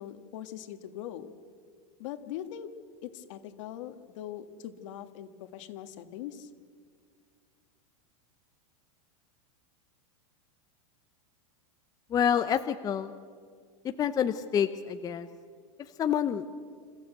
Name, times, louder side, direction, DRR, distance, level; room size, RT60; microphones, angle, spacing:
voice 1, 0.0-1.3 2.0-2.7 3.0-6.5, left 11 dB, 60° left, 9 dB, 1.7 m, -41 dB
voice 2, 12.1-13.1 14.0-15.3 16.0-16.4, left 8 dB, 20° left, 9 dB, 0.7 m, -27 dB
27.5 x 15.0 x 8.2 m, 2.1 s
supercardioid pair, 145°, 18 cm